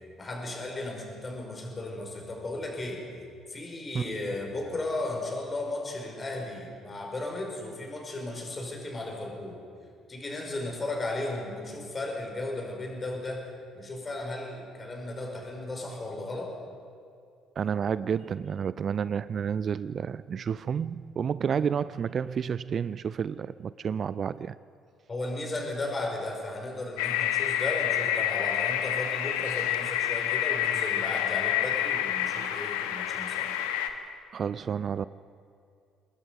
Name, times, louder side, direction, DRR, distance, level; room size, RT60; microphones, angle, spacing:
voice 1, 0.2-3.0 3.5-9.6 10.1-13.4 13.7-16.5 25.1-33.5, left 2 dB, 30° left, 1 dB, 5.3 m, -35 dB
voice 2, 17.6-24.6 34.3-35.1, right 7 dB, 45° right, 17 dB, 0.4 m, -30 dB
sound 1, 27.0-33.9, left 11 dB, 70° left, 1.2 m, -28 dB
25.0 x 20.5 x 5.4 m, 2.4 s
figure-of-eight pair, 50°, 0 cm